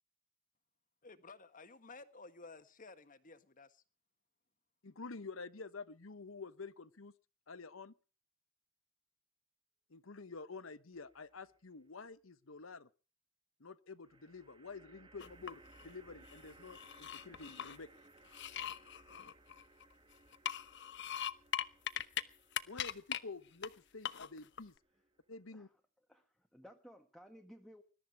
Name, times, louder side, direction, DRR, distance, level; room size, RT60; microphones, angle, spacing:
voice 1, 1.0-3.8, left 3 dB, 40° left, 1.6 m, -54 dB
voice 2, 4.8-7.1 7.5-7.9 9.9-12.9 13.6-17.9 22.7-24.7 25.3-25.7, left 4 dB, 80° left, 1.0 m, -49 dB
sound 1, 10.9-11.6 14.0-25.4, right 2 dB, 25° right, 1.5 m, -63 dB
sound 2, 15.2-15.9 16.3-17.8 18.3-19.9 20.3-22.2 22.5-23.2 23.6-23.7 24.0-24.6, left 10 dB, 60° left, 1.0 m, -40 dB
voice 3, 26.1-27.8, equal, ahead, 1.6 m, -57 dB
21.0 x 13.0 x 4.6 m
head